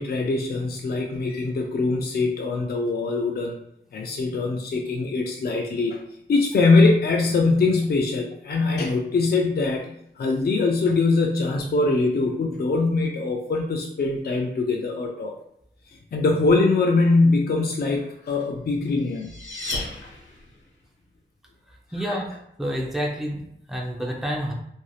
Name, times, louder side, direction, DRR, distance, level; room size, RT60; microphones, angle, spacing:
voice 1, 0.0-3.6 3.9-6.0 6.3-15.3 16.1-19.3 22.1-22.2, left 3 dB, 55° left, 1 dB, 0.4 m, -22 dB
sound 1, 18.6-20.7, left 2 dB, 70° left, 1.0 m, -34 dB
voice 2, 21.9-24.5, equal, ahead, -2 dB, 0.6 m, -29 dB
3.1 x 2.6 x 2.3 m, 0.75 s
wide cardioid pair, 85°, 20 cm